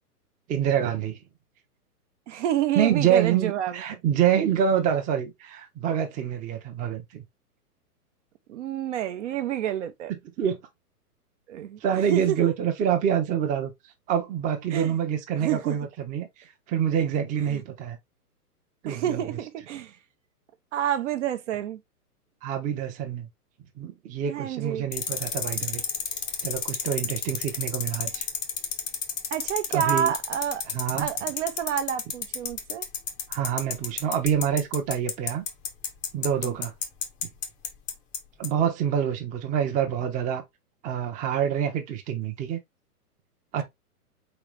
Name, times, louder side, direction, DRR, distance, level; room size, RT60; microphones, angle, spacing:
voice 1, 0.5-1.2 2.7-7.2 10.1-10.6 11.8-13.7 14.1-16.3 16.7-18.0 18.8-19.2 22.4-23.3 23.8-25.8 26.4-28.3 29.7-30.1 30.7-31.1 33.3-35.4 36.1-36.7 38.4-40.4 40.8-42.6 43.5-43.6, right 9 dB, 15° right, 0.7 m, -26 dB
voice 2, 2.3-4.0 8.5-10.1 11.5-11.8 12.1-12.5 14.7-14.9 15.4-15.8 17.5-17.6 18.9-20.0 20.7-21.8 24.3-24.8 29.3-30.6 31.0-32.9 36.4-36.5, right 10 dB, 50° right, 0.8 m, -29 dB
sound 1, 24.9-38.2 38.4-38.5, left 8 dB, 15° left, 0.6 m, -30 dB
4.1 x 4.0 x 3.2 m
hypercardioid pair, 130°, 46 cm